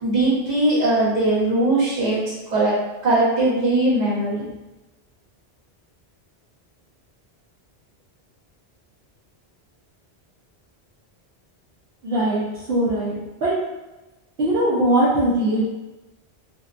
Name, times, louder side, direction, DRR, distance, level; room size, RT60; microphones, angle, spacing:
voice 1, 0.0-2.2 2.5-2.7 3.0-4.5, right 2 dB, 45° right, -9 dB, 1.0 m, -20 dB
voice 2, 12.0-12.4 12.7-13.5 14.4-15.6, right 1 dB, 70° right, -9 dB, 0.8 m, -20 dB
2.6 x 2.1 x 2.5 m, 1.1 s
omnidirectional pair, 1.1 m